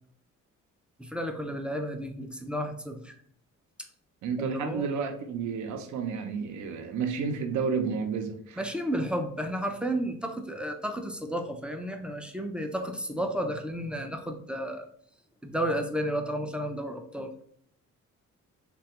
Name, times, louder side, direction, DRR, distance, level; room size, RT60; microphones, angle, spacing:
voice 1, 1.0-3.1 4.4-5.0 8.6-14.9 15.4-17.3, equal, 5° right, 0.4 m, -32 dB
voice 2, 4.2-8.6, right 5 dB, 70° right, 0.5 m, -31 dB
3.2 x 2.3 x 2.8 m
cardioid pair, 90°, 30 cm